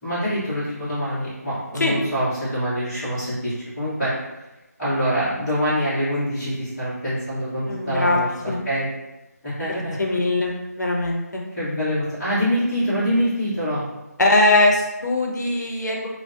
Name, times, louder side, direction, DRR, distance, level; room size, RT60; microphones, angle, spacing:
voice 1, 0.0-4.2 4.8-8.3 8.6-8.9 9.4-10.1 11.5-13.8, equal, 5° left, -19 dB, 0.7 m, -25 dB
voice 2, 7.7-8.2 8.5-8.6 9.7-11.4 14.2-16.1, left 2 dB, 85° left, 0 dB, 0.6 m, -21 dB
2.5 x 2.1 x 2.3 m, 1.0 s
figure-of-eight pair, 170°, 9 cm